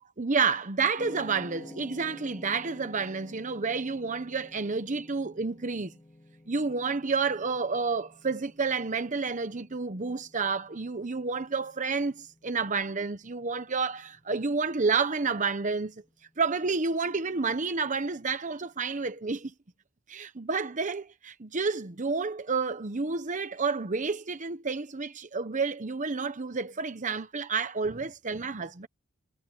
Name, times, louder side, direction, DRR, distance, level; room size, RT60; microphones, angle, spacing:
voice 1, 0.0-5.9 6.5-15.9 16.4-19.5 20.1-28.9, right 4 dB, 40° right, 0.9 m, -30 dB
sound 1, 1.0-19.2, left 1 dB, 20° left, 2.2 m, -53 dB
head